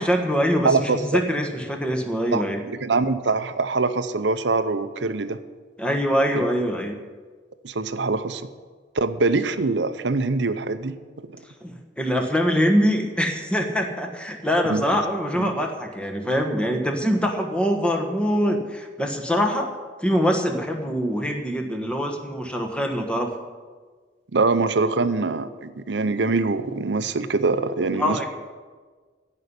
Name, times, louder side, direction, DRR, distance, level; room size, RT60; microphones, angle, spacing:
voice 1, 0.0-2.6 5.8-7.0 11.6-19.7 20.0-23.4 28.0-28.3, equal, 5° left, 3 dB, 1.4 m, -24 dB
voice 2, 0.6-1.2 2.3-5.4 6.3-6.4 7.6-8.4 8.9-11.0 14.7-14.8 15.4-15.5 24.3-28.3, right 3 dB, 65° right, 11 dB, 0.7 m, -23 dB
16.0 x 5.6 x 9.7 m, 1.5 s
head